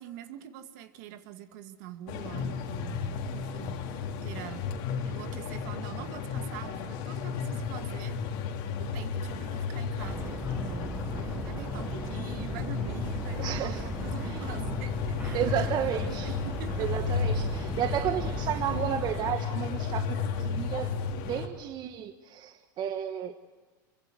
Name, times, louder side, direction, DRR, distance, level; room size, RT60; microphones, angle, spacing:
voice 1, 0.0-3.8 4.2-4.7 5.0-8.2 8.6-10.9 11.1-16.9 18.3-18.4, right 10 dB, 65° right, 7 dB, 2.2 m, -44 dB
sound 1, 2.1-21.5, left 6 dB, 60° left, 3.2 m, -33 dB
sound 2, 10.0-19.3, right 3 dB, 15° right, 1.1 m, -38 dB
voice 2, 13.4-13.9 14.2-14.6 15.3-16.3 16.8-20.9 21.2-23.3, right 9 dB, 40° right, 7 dB, 1.4 m, -32 dB
27.5 x 23.5 x 7.9 m, 1.2 s
hypercardioid pair, 105°, 11 cm